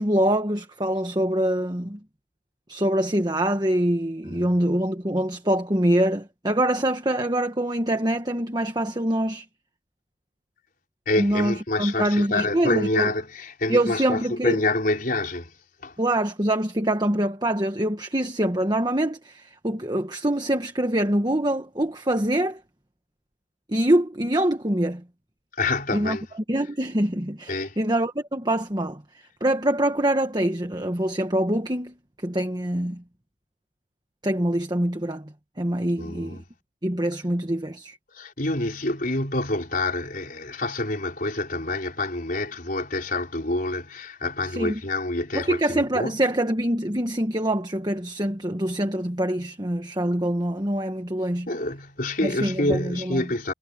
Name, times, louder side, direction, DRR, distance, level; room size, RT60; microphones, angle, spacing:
voice 1, 0.0-2.0 2.7-9.4 11.2-13.1 13.7-14.6 16.0-22.6 23.7-25.0 25.9-26.2 26.5-29.0 29.4-31.9 32.2-33.0 34.2-35.3 35.6-36.4 36.8-38.0 44.5-44.7 45.3-51.5 52.2-53.2, right 1 dB, 20° right, 1.5 m, -24 dB
voice 2, 4.3-4.6 11.1-15.6 15.8-15.9 25.5-26.2 27.5-27.8 36.0-36.4 38.1-46.2 51.5-53.5, left 2 dB, 45° left, 4.6 m, -27 dB
head